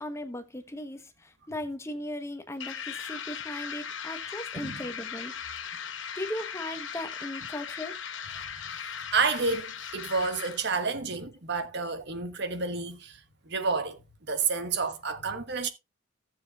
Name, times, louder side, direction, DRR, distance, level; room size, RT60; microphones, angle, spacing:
voice 1, 0.0-5.3 6.1-8.0, left 1 dB, 15° left, 1.2 m, -37 dB
sound 1, 2.6-10.9, left 7 dB, 65° left, 1.0 m, -38 dB
voice 2, 8.8-13.2 13.5-14.0 14.3-15.7, right 4 dB, 55° right, 1.3 m, -30 dB
15.0 x 7.3 x 2.5 m
head